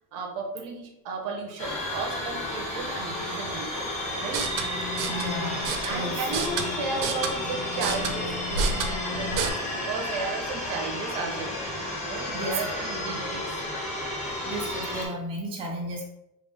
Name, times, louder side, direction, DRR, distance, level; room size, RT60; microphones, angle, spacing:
voice 1, 0.1-3.9 4.2-4.5 5.8-11.5 12.1-13.5, right 3 dB, 65° right, 2 dB, 0.9 m, -34 dB
sound 1, 1.6-15.1, left 1 dB, 20° left, 0.8 m, -32 dB
sound 2, 4.2-9.5, right 3 dB, 90° right, 0.6 m, -31 dB
voice 2, 5.1-6.4 12.3-12.6 12.9-13.0 14.2-16.0, right 1 dB, 15° right, -1 dB, 0.4 m, -34 dB
3.3 x 2.5 x 3.4 m, 0.86 s
cardioid pair, 170°, 35 cm